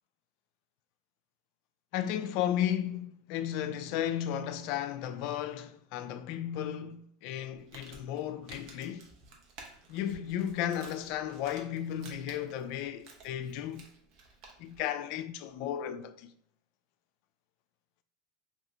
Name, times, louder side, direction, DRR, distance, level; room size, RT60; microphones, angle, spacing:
voice 1, 1.9-9.1 9.9-13.9 14.6-16.3, left 10 dB, 60° left, 0.3 m, -34 dB
Crumpling crinkling, 7.5-14.8, right 3 dB, 55° right, 0.8 m, -54 dB
2.8 x 2.6 x 3.3 m
hypercardioid pair, 90°, 0 cm